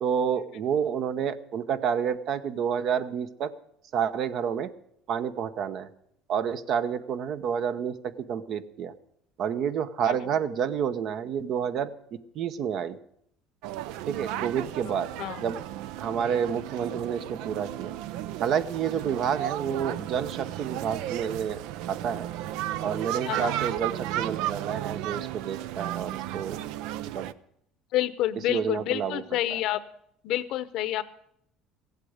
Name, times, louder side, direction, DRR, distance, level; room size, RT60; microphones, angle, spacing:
voice 1, 0.0-3.5 3.9-4.7 5.1-5.9 6.3-8.9 9.4-13.0 14.1-15.1 15.4-15.6 16.0-17.9 18.4-21.6 21.9-22.3 22.8-26.7 27.1-27.3 28.5-29.2 29.5-29.6, right 8 dB, 55° right, 12 dB, 0.9 m, -29 dB
sound 1, 13.6-27.3, right 13 dB, 75° right, 0.5 m, -34 dB
voice 2, 27.9-29.8 30.2-31.0, left 13 dB, 65° left, 15 dB, 0.8 m, -28 dB
15.5 x 8.4 x 8.0 m, 0.72 s
supercardioid pair, 110°, 0 cm